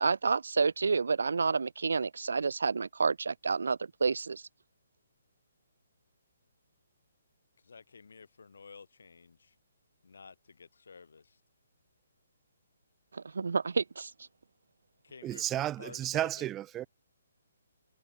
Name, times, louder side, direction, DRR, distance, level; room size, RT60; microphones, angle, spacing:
voice 1, 0.0-4.4 13.1-14.1, right 4 dB, 90° right, 0.3 m, -29 dB
voice 2, 7.6-9.5 10.0-11.4 15.0-16.5, left 5 dB, 80° left, 6.5 m, -52 dB
voice 3, 15.2-16.9, right 13 dB, 10° right, 1.2 m, -33 dB
hypercardioid pair, 170°, 0 cm